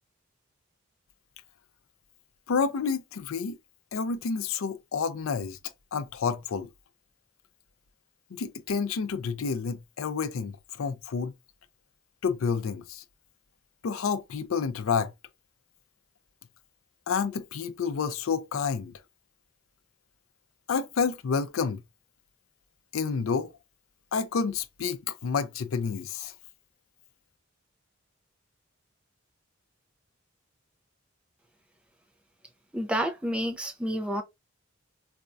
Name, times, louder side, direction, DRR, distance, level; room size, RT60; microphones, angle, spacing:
voice 1, 2.5-3.6 3.9-5.6 5.9-6.7 8.3-11.3 12.2-13.0 13.8-15.1 17.1-18.9 20.7-21.8 22.9-23.5 24.1-26.3, left 5 dB, 80° left, 0.4 m, -29 dB
voice 2, 32.7-34.2, equal, 5° right, 0.4 m, -29 dB
4.1 x 2.2 x 2.4 m
head